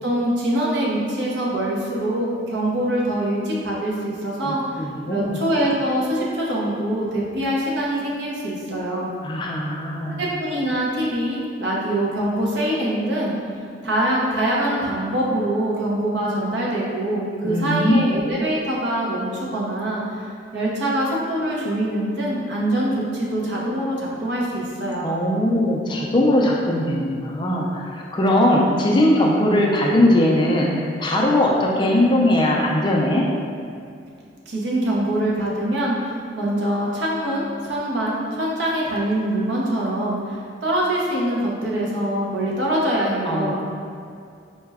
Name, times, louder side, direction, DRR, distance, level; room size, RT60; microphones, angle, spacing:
voice 1, 0.0-9.1 10.2-13.3 13.8-20.3 20.5-25.1 34.5-43.6, right 1 dB, 65° right, -4 dB, 0.7 m, -24 dB
voice 2, 4.4-5.4 9.2-10.2 17.4-18.0 25.0-33.2 43.3-43.6, left 1 dB, 25° left, -2 dB, 0.3 m, -20 dB
4.6 x 2.1 x 3.4 m, 2.4 s
head